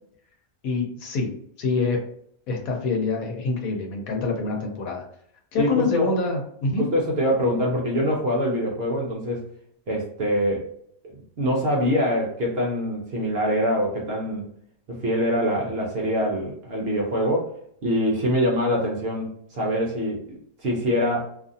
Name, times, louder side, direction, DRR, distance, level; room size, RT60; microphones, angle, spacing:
voice 1, 0.6-1.3 1.6-2.0 2.5-5.0 5.5-6.9, left 4 dB, 80° left, 2 dB, 1.1 m, -25 dB
voice 2, 5.6-6.1 6.8-9.5 9.9-10.7 11.1-14.5 14.9-17.5 17.8-20.2 20.6-21.2, equal, 55° right, -2 dB, 0.8 m, -24 dB
2.7 x 2.4 x 2.5 m, 0.69 s
omnidirectional pair, 1.5 m